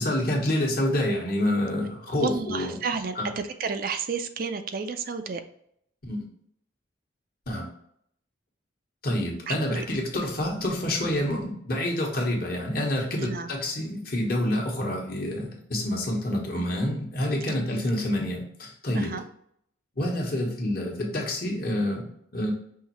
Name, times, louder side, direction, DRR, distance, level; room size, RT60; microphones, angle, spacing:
voice 1, 0.0-2.7 3.2-3.3 6.0-6.2 7.5-7.6 9.0-19.1 20.0-22.5, left 1 dB, 50° left, -1 dB, 1.2 m, -28 dB
voice 2, 2.2-5.4 9.5-9.8 13.2-13.5 17.7-17.8 18.9-19.2, right 5 dB, 45° right, 8 dB, 0.4 m, -31 dB
5.6 x 3.1 x 3.0 m, 0.70 s
head